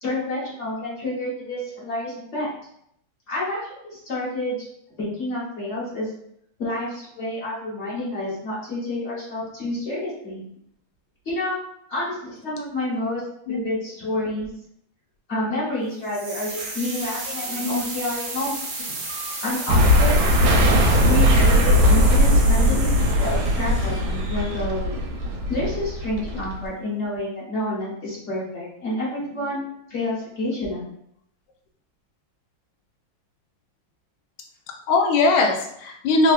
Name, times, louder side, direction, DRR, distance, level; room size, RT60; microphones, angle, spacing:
voice 1, 0.0-2.5 3.3-4.7 5.0-6.1 6.6-10.4 11.2-11.6 11.9-14.5 15.3-18.5 18.9-19.0 19.4-20.1 21.1-25.0 25.5-30.9, left 1 dB, 45° left, -7 dB, 1.1 m, -29 dB
sound 1, 16.0-24.9, right 2 dB, 60° right, 1.1 m, -33 dB
sound 2, 19.7-26.7, equal, 85° right, 1.3 m, -19 dB
voice 2, 34.9-36.3, left 3 dB, 75° left, 3 dB, 1.2 m, -21 dB
3.3 x 2.3 x 2.4 m, 0.72 s
omnidirectional pair, 2.2 m